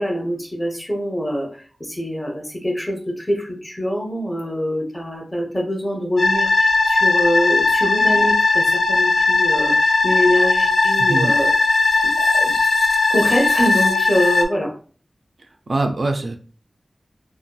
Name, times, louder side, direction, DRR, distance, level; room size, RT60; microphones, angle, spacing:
voice 1, 0.0-11.5 12.0-12.5 13.1-14.7, equal, 20° left, 1 dB, 0.7 m, -24 dB
sound 1, 6.2-14.4, left 3 dB, 75° left, 0.3 m, -18 dB
voice 2, 11.0-11.4 11.9-12.2 15.7-16.4, right 2 dB, 60° right, 5 dB, 0.3 m, -23 dB
2.6 x 2.3 x 2.2 m, 0.42 s
wide cardioid pair, 75°, 0 cm